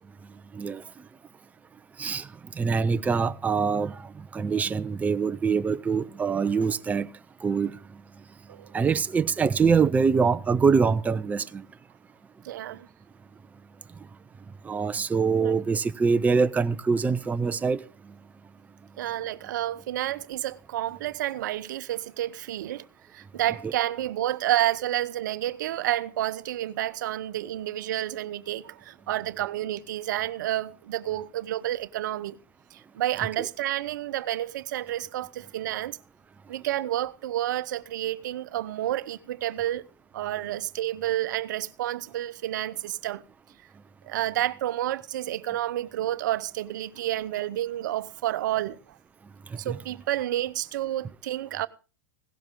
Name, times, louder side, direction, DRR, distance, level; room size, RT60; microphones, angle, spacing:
voice 1, 2.6-4.0 4.3-7.1 7.4-7.7 8.7-11.6 14.7-17.8 49.7-49.8, right 5 dB, 15° right, 0.6 m, -24 dB
voice 2, 12.4-12.9 15.4-15.6 19.0-22.9 23.1-32.4 32.7-36.0 36.5-39.8 40.1-43.2 44.0-49.0 49.6-51.7, right 13 dB, 70° right, 0.8 m, -30 dB
17.0 x 12.0 x 3.7 m
hypercardioid pair, 105°, 10 cm